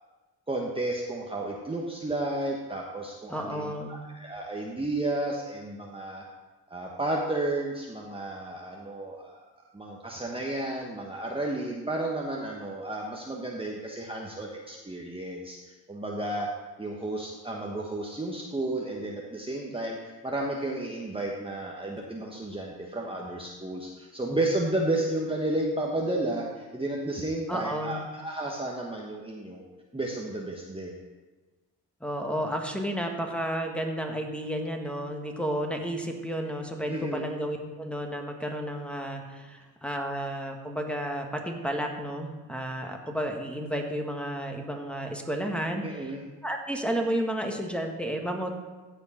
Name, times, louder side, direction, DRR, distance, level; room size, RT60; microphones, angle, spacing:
voice 1, 0.5-6.2 6.7-9.4 9.7-16.5 16.8-29.6 29.9-31.0 36.9-37.3 45.8-46.2, right 1 dB, 10° right, -2 dB, 1.3 m, -32 dB
voice 2, 3.3-4.0 27.5-28.0 32.0-46.2 46.4-48.6, equal, 5° left, 2 dB, 1.7 m, -32 dB
15.5 x 5.2 x 4.4 m, 1.2 s
supercardioid pair, 60°, 43 cm